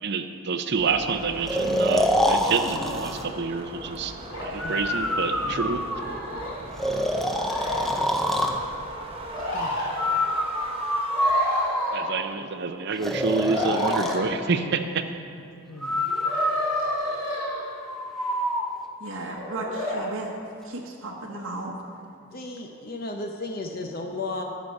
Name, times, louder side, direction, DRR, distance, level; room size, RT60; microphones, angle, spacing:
voice 1, 0.0-4.1 4.4-5.8 11.9-15.0, right 4 dB, 50° right, 8 dB, 0.6 m, -27 dB
sound 1, 0.8-11.3, right 2 dB, 25° right, 0.9 m, -39 dB
Breathing, 1.5-3.3 4.6-6.3 6.8-8.6 10.0-12.2 13.0-14.2 15.8-18.7, equal, ahead, 0.5 m, -26 dB
sound 2, 2.4-3.2 4.3-4.5 5.9-6.5 7.4-7.8 9.3-10.0 11.1-12.0 13.3-14.4 16.1-17.7 19.4-20.1, left 1 dB, 75° left, 2.8 m, -32 dB
voice 2, 5.4-5.9 9.5-9.7 15.7-15.9 22.3-24.4, left 2 dB, 45° left, 3 dB, 0.6 m, -35 dB
voice 3, 19.0-20.3 20.6-21.7, right 2 dB, 70° right, -2 dB, 1.1 m, -34 dB
13.5 x 6.4 x 5.3 m, 2.5 s
head